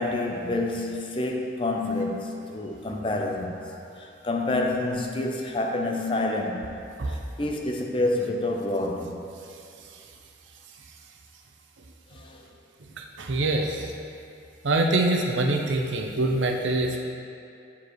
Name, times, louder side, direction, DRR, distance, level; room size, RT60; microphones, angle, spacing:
voice 1, 0.0-6.8 7.1-9.2 12.1-12.4, left 2 dB, 30° left, 1 dB, 0.5 m, -28 dB
voice 2, 13.0-13.9 14.6-17.0, right 2 dB, 85° right, 2 dB, 0.6 m, -24 dB
8.3 x 4.8 x 3.1 m, 2.5 s
head